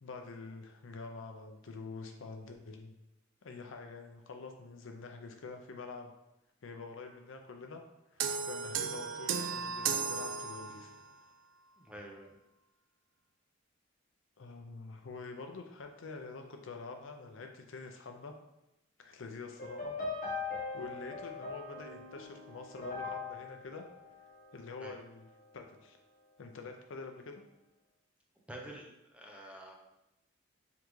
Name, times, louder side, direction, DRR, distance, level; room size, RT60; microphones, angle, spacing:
voice 1, 0.0-2.9 3.4-6.1 6.6-7.8 8.1-10.9 14.4-18.3 19.0-19.9 20.7-23.8 24.5-25.3 25.5-26.0 26.4-27.3, left 4 dB, 70° left, 4 dB, 0.5 m, -46 dB
sound 1, 8.2-11.1, right 6 dB, 70° right, 0.3 m, -35 dB
voice 2, 11.8-12.3 24.8-25.0 28.5-29.7, right 1 dB, 5° right, -1 dB, 0.6 m, -48 dB
sound 2, 19.6-24.9, left 4 dB, 45° left, 0.9 m, -41 dB
3.7 x 3.4 x 3.1 m, 0.91 s
head